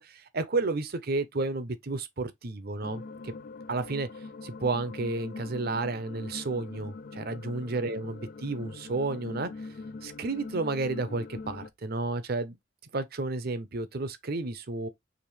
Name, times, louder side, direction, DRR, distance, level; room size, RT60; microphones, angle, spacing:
voice 1, 0.0-3.3 3.7-4.1 4.4-9.5 10.0-12.6 12.9-14.9, right 3 dB, 55° right, 0.8 m, -32 dB
sound 1, 2.8-11.7, left 3 dB, 50° left, 0.4 m, -42 dB
5.1 x 3.1 x 3.2 m
head